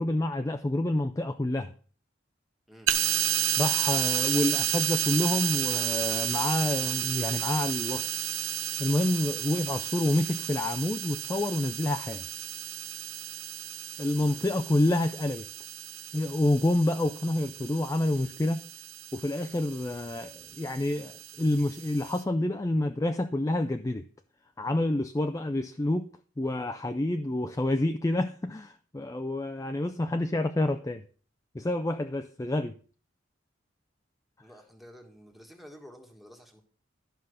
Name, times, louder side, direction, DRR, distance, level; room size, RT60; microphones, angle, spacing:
voice 1, 0.0-1.7 3.6-8.2 8.8-12.2 14.0-15.5 16.1-18.6 19.1-24.0 24.6-26.1 26.4-31.0 31.5-32.7, left 1 dB, 15° left, 0.4 m, -28 dB
sound 1, 2.9-22.2, right 11 dB, 80° right, 0.9 m, -32 dB
voice 2, 14.1-14.6 34.4-36.6, equal, ahead, 1.5 m, -51 dB
12.0 x 5.7 x 6.4 m
head